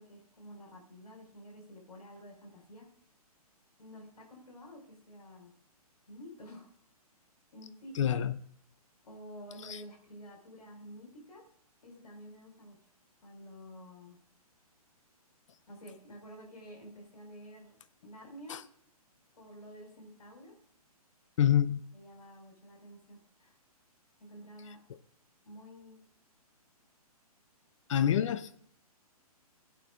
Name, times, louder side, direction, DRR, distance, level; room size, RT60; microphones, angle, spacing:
voice 1, 0.0-2.9 3.8-5.5 6.1-6.7 7.5-8.0 9.0-11.4 11.8-12.8 13.2-14.2 15.7-17.7 18.0-18.6 19.3-20.5 21.9-23.6 24.2-24.8 25.4-26.0, equal, 85° left, 1 dB, 5.0 m, -50 dB
voice 2, 7.9-8.3 9.6-9.8 18.5-18.6 21.4-21.8 27.9-28.6, left 10 dB, 55° left, 14 dB, 0.7 m, -27 dB
17.0 x 8.9 x 2.4 m, 0.66 s
hypercardioid pair, 135°, 20 cm